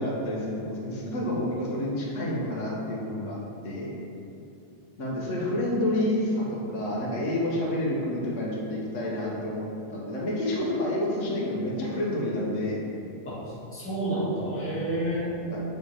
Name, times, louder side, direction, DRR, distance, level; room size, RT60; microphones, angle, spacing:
voice 1, 0.0-3.4 3.6-3.9 5.0-12.8 15.5-15.6, left 1 dB, 85° left, -4 dB, 1.3 m, -29 dB
voice 2, 13.7-15.4, right 1 dB, 10° left, -8 dB, 1.4 m, -30 dB
6.7 x 3.5 x 4.3 m, 2.7 s
omnidirectional pair, 1.3 m